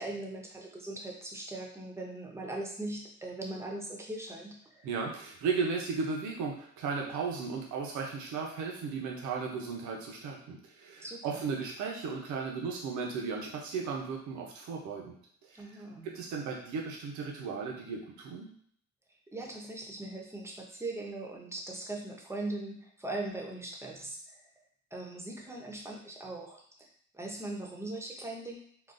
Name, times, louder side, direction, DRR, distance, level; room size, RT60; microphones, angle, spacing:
voice 1, 0.0-4.9 11.0-11.5 15.5-16.2 19.3-24.5 24.9-26.9 27.1-28.7, right 2 dB, 10° right, -1 dB, 0.6 m, -40 dB
voice 2, 4.8-15.2 15.5-15.6 16.0-18.5, right 5 dB, 80° right, 0 dB, 0.7 m, -35 dB
3.8 x 2.3 x 2.5 m, 0.63 s
cardioid pair, 120°, 30 cm